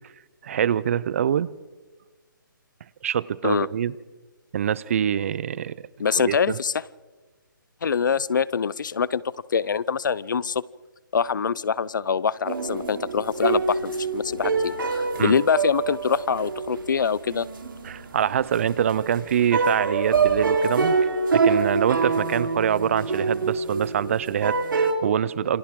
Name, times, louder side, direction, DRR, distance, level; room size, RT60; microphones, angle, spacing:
voice 1, 0.4-1.5 3.0-3.9 4.5-5.8 6.1-6.6 15.2-15.4 17.8-21.0 21.3-25.6, right 9 dB, 40° right, 20 dB, 0.7 m, -25 dB
voice 2, 6.0-6.8 7.8-9.2 9.5-10.6 11.1-17.5, left 6 dB, 65° left, 22 dB, 0.7 m, -24 dB
sound 1, 12.4-24.9, right 4 dB, 75° right, 3.9 m, -26 dB
28.0 x 24.5 x 3.8 m, 1.3 s
hypercardioid pair, 155°, 11 cm